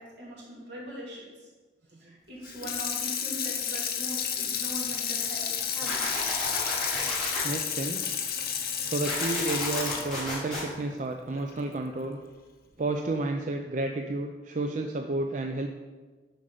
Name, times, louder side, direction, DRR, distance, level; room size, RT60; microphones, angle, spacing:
voice 1, 0.0-1.5 2.0-6.5, right 1 dB, 75° right, -5 dB, 3.1 m, -41 dB
Water tap faucet / Sink (filling or washing), 2.4-11.6 12.0-12.1, left 8 dB, 55° left, 1.0 m, -31 dB
sound 1, 5.9-7.4 9.1-10.6, left 1 dB, 5° left, 2.9 m, -32 dB
voice 2, 7.4-8.1 8.8-12.2 12.8-15.7, right 2 dB, 45° right, 4 dB, 0.5 m, -31 dB
7.3 x 5.4 x 6.6 m, 1.3 s
head